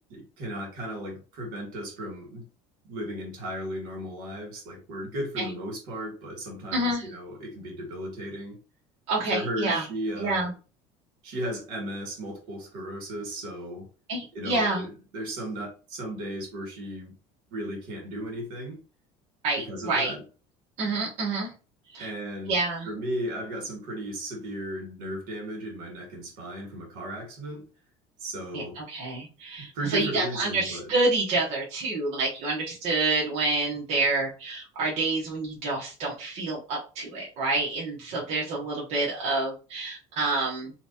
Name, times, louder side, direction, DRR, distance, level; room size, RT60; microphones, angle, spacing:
voice 1, 0.1-2.4 2.8-8.6 9.3-10.5 11.2-13.9 14.3-17.1 17.5-18.8 19.6-20.2 22.0-22.6 22.8-27.6 28.2-28.8 29.7-30.9, right 1 dB, 80° right, 1 dB, 1.9 m, -35 dB
voice 2, 6.7-7.1 9.1-9.8 10.2-10.5 14.1-14.8 19.4-20.1 20.8-21.5 21.9-22.1 22.5-22.9 28.5-40.7, right 2 dB, 55° right, -4 dB, 1.1 m, -28 dB
3.2 x 3.1 x 2.8 m, 0.34 s
cardioid pair, 135°, 13 cm